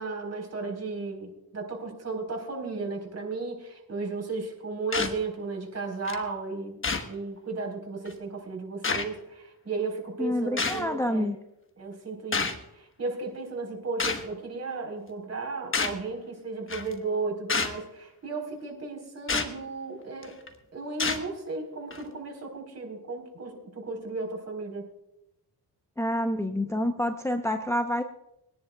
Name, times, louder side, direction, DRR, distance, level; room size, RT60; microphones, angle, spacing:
voice 1, 0.0-11.3 11.8-20.3 20.7-24.9, right 3 dB, 45° right, 2 dB, 4.2 m, -35 dB
sound 1, 4.9-5.2 6.1-6.2 6.8-7.1 8.1-8.2 8.8-9.1 10.6-10.8 12.3-12.6 14.0-14.3 15.7-16.0 16.7-16.9 17.5-17.8 19.3-19.5 20.2-20.5 21.0-21.2 21.9-22.0, left 4 dB, 35° left, 1.2 m, -28 dB
voice 2, 10.2-11.4 26.0-28.0, left 1 dB, 5° left, 5 dB, 0.7 m, -28 dB
23.5 x 10.5 x 2.3 m, 0.85 s
cardioid pair, 75°, 37 cm